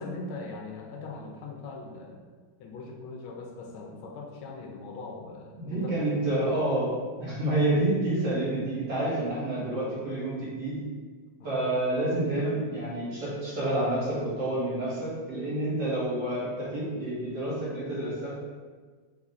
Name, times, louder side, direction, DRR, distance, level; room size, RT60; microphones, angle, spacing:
voice 1, 0.0-2.2 2.6-5.9 6.3-6.5 11.4-11.5, left 3 dB, 85° left, 1 dB, 1.5 m, -40 dB
voice 2, 5.6-6.9 7.2-10.8 11.4-18.4, right 1 dB, 55° right, -8 dB, 1.8 m, -28 dB
3.9 x 2.5 x 4.1 m, 1.4 s
omnidirectional pair, 2.2 m